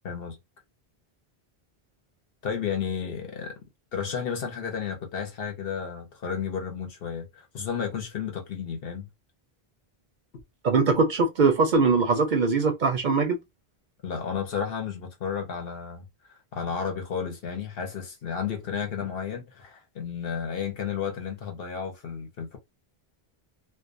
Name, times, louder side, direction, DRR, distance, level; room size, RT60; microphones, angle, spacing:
voice 1, 0.0-0.4 2.4-3.6 3.9-9.1 14.0-22.6, left 7 dB, 70° left, 1.0 m, -32 dB
voice 2, 10.6-13.4, right 4 dB, 60° right, 0.6 m, -22 dB
2.3 x 2.3 x 2.5 m
omnidirectional pair, 1.0 m